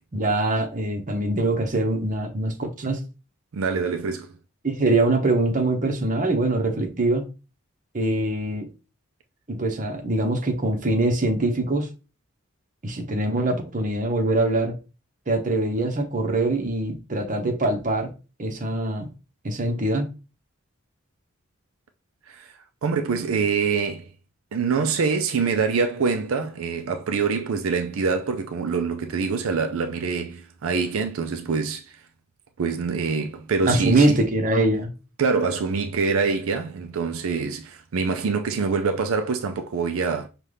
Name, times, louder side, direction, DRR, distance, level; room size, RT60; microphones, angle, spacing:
voice 1, 0.1-3.0 4.6-7.3 7.9-8.7 9.5-11.9 12.8-14.8 15.3-18.1 18.4-19.1 19.4-20.1 33.7-34.9, right 2 dB, 40° right, 0.9 m, -23 dB
voice 2, 3.5-4.3 22.3-22.5 22.8-24.1 24.5-32.0 32.6-34.2 35.2-40.3, right 5 dB, 80° right, 0.4 m, -25 dB
5.5 x 2.4 x 3.3 m
head